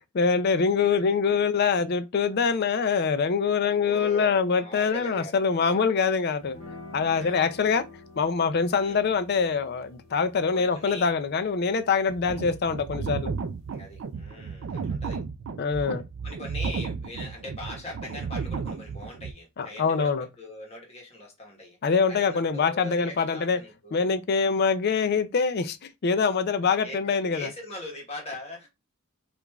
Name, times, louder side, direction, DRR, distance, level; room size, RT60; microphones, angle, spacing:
voice 1, 0.1-6.6 6.9-7.8 8.2-13.3 15.6-16.0 19.6-20.3 21.8-23.6 23.9-25.8 26.0-27.5, left 5 dB, 45° left, 0.4 m, -24 dB
voice 2, 3.6-5.3 5.6-5.8 7.1-7.5 8.8-9.0 10.5-11.1 12.3-12.5 13.7-15.2 16.2-21.8 22.1-24.1 26.8-28.7, left 1 dB, 30° left, 1.1 m, -41 dB
sound 1, 6.4-14.2, left 3 dB, 60° left, 0.8 m, -49 dB
sound 2, 12.1-19.3, right 5 dB, 55° right, 0.3 m, -33 dB
4.8 x 2.5 x 2.3 m
head